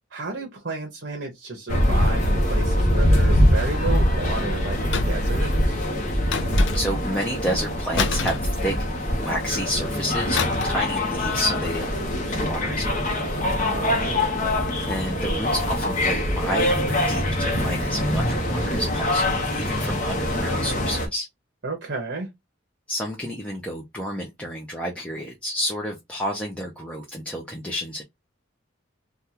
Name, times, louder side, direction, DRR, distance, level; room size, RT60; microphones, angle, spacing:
voice 1, 0.1-5.8 13.3-14.4 21.6-22.3, right 2 dB, 55° right, 0.8 m, -32 dB
sound 1, 1.7-21.1, left 1 dB, 40° left, 0.8 m, -23 dB
sound 2, 4.9-5.4 6.3-7.1 8.0-9.1 10.4-10.9 11.1-11.4, left 5 dB, 65° left, 0.5 m, -28 dB
voice 2, 6.5-8.7 9.2-13.2 14.9-21.3 22.9-28.0, equal, 5° left, 0.6 m, -30 dB
3.4 x 2.3 x 2.8 m
head